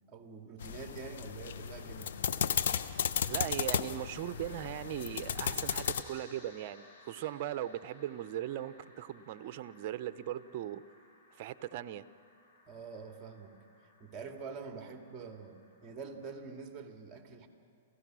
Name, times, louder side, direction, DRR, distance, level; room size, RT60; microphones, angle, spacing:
voice 1, 0.1-2.2 12.7-13.5 14.0-17.5, right 5 dB, 20° right, 4 dB, 2.4 m, -46 dB
sound 1, 0.6-6.0, left 8 dB, 70° left, 0.9 m, -34 dB
sound 2, 1.0-16.3, left 2 dB, 50° left, 6.1 m, -60 dB
voice 2, 3.2-10.8 11.4-12.0, right 12 dB, 45° right, 14 dB, 0.7 m, -39 dB
28.5 x 16.5 x 6.3 m, 2.2 s
hypercardioid pair, 135°, 0 cm